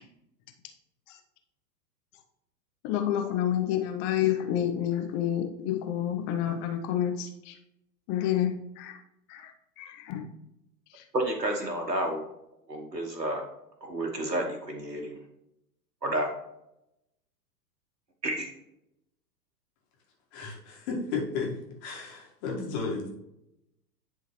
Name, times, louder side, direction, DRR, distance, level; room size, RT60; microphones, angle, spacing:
voice 1, 2.8-7.5 8.1-9.0 9.3-10.3 10.9-11.0, left 10 dB, 20° left, 5 dB, 0.6 m, -29 dB
voice 2, 11.1-12.3 12.7-13.4 13.8-15.2 16.0-16.3 18.2-18.5, right 1 dB, 85° right, 2 dB, 1.1 m, -30 dB
voice 3, 20.3-23.1, left 4 dB, 40° left, -1 dB, 1.8 m, -33 dB
10.0 x 3.7 x 3.2 m, 0.85 s
figure-of-eight pair, 100°, 49 cm